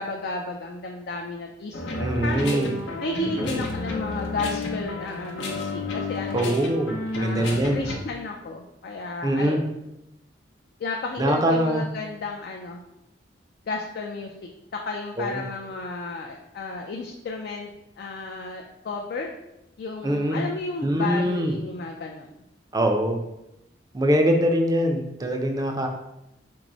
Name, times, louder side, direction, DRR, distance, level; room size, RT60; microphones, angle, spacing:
voice 1, 0.0-2.7 3.0-6.6 7.2-9.6 10.8-12.8 13.7-14.3 14.7-17.7 18.0-19.3 19.8-22.3, left 3 dB, 60° left, 1 dB, 0.4 m, -33 dB
sound 1, 1.7-8.0, left 1 dB, 85° left, 0.7 m, -31 dB
voice 2, 2.0-2.7 3.3-3.6 6.3-7.8 9.2-9.6 11.2-11.8 15.2-15.4 20.0-20.4 20.8-21.5 22.7-23.2 23.9-25.9, equal, 20° right, 4 dB, 0.4 m, -23 dB
4.6 x 2.0 x 3.8 m, 0.89 s
head